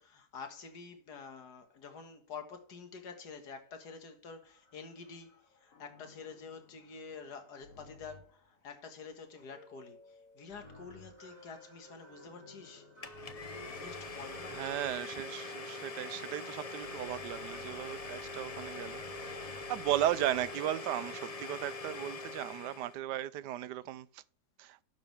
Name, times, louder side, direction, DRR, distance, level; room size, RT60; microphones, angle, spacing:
voice 1, 0.0-5.3 5.6-10.0 10.4-12.9 13.6-15.1, left 5 dB, 70° left, 2.1 m, -48 dB
sound 1, 4.4-21.9, right 2 dB, 25° left, 3.1 m, -58 dB
sound 2, 5.7-8.5 10.5-11.3 12.2-15.2 16.8-20.7, left 4 dB, 55° left, 1.3 m, -56 dB
Domestic sounds home sounds, 13.0-23.0, left 3 dB, 40° left, 0.5 m, -43 dB
voice 2, 14.5-24.2 24.6-24.8, right 12 dB, 80° right, 1.2 m, -36 dB
12.0 x 7.3 x 3.4 m
omnidirectional pair, 1.8 m